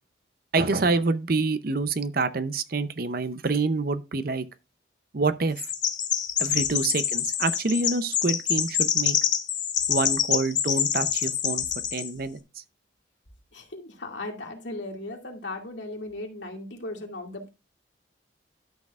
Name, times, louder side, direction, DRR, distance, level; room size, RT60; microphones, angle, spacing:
voice 1, 0.5-4.5 5.1-5.7 6.4-9.2 9.9-11.6 11.9-12.4, right 3 dB, 50° right, 0.7 m, -26 dB
Chirp tweet, 5.6-12.1, left 9 dB, 45° left, 1.1 m, -26 dB
voice 2, 13.5-17.5, left 2 dB, 70° left, 2.3 m, -37 dB
12.0 x 6.5 x 2.4 m
head